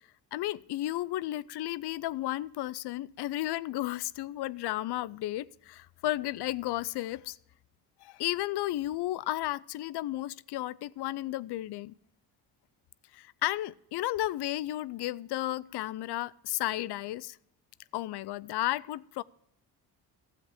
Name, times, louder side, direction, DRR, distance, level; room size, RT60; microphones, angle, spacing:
voice 1, 0.3-7.4 8.0-11.9 13.1-17.4 17.9-19.2, left 15 dB, 60° left, 0.5 m, -33 dB
12.5 x 7.9 x 4.9 m
supercardioid pair, 60°, 45 cm